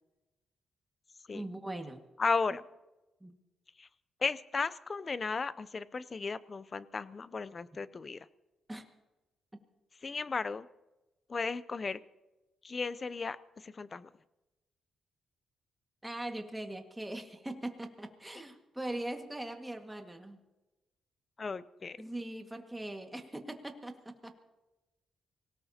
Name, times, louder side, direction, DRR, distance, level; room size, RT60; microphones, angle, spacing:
voice 1, 1.3-2.0 3.2-3.3 8.7-8.9 16.0-20.4 22.0-24.3, right 1 dB, 10° right, 4 dB, 1.9 m, -41 dB
voice 2, 2.2-2.6 3.8-3.9 4.2-8.2 10.0-10.7 11.3-12.0 12.6-13.4 13.6-14.1 21.4-22.0, left 4 dB, 35° left, 17 dB, 0.6 m, -35 dB
24.5 x 18.0 x 2.9 m, 1.0 s
cardioid pair, 85°, 0 cm